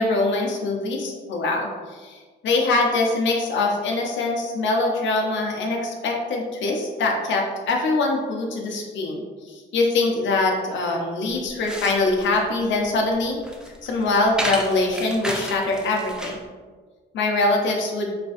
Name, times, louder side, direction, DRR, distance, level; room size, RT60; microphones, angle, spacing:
voice 1, 0.0-13.4 13.8-16.4 17.1-18.1, left 2 dB, 70° left, 1 dB, 0.7 m, -23 dB
sound 1, 11.3-16.5, right 1 dB, 5° right, 0.5 m, -32 dB
4.4 x 2.5 x 2.5 m, 1.4 s
cardioid pair, 90°, 20 cm